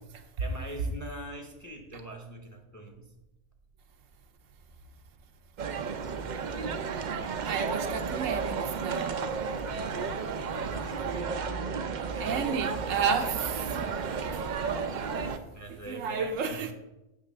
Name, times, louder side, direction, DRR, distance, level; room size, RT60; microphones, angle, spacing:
voice 1, 0.4-3.1 10.6-11.5 12.1-12.6 14.0-14.1 15.5-16.7, right 1 dB, 15° left, 0.7 m, -43 dB
sound 1, 5.6-15.4, right 5 dB, 60° right, 0.4 m, -33 dB
voice 2, 7.4-9.2 12.2-14.0 14.3-14.5 14.8-15.3 15.7-16.7, right 6 dB, 75° right, 1.1 m, -32 dB
7.9 x 3.4 x 6.4 m
omnidirectional pair, 1.3 m